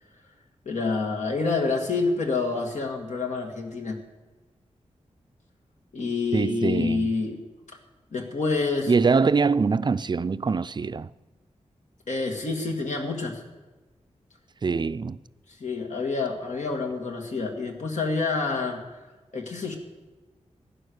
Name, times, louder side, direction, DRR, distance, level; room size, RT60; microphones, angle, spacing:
voice 1, 0.7-4.0 5.9-7.4 8.1-8.9 12.1-13.4 15.6-18.8 19.3-19.8, left 4 dB, 80° left, 2.2 m, -27 dB
voice 2, 6.3-7.1 8.9-11.1 14.6-15.2, right 4 dB, 40° right, 0.4 m, -23 dB
15.5 x 10.0 x 6.5 m
wide cardioid pair, 95°, 12 cm